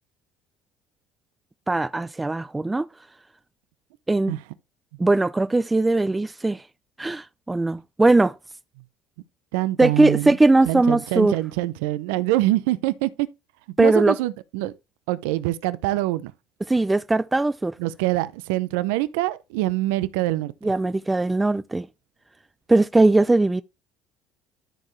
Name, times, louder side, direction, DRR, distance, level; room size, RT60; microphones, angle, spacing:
voice 1, 1.7-2.9 4.1-4.4 5.0-6.6 7.0-8.3 9.8-11.3 13.8-14.2 16.7-17.7 20.6-21.9 22.7-23.6, right 2 dB, 15° right, 0.4 m, -20 dB
voice 2, 9.5-10.4 10.7-13.3 13.8-14.7 15.1-16.3 17.8-20.5, right 17 dB, 85° right, 0.6 m, -24 dB
13.0 x 4.6 x 3.2 m
supercardioid pair, 90°, 0 cm